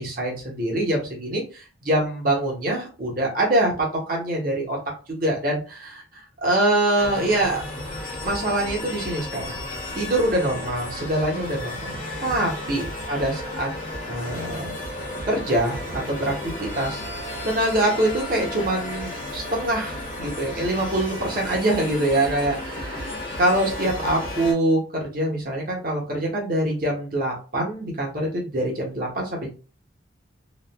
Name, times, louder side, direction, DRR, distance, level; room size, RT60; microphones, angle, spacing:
voice 1, 0.0-4.8 5.1-7.6 8.2-9.7 9.9-13.7 14.1-14.7 15.3-17.0 17.4-29.5, right 1 dB, 45° right, -1 dB, 1.0 m, -24 dB
sound 1, 7.0-24.5, left 1 dB, 45° left, 1.1 m, -33 dB
3.0 x 2.4 x 2.2 m, 0.35 s
head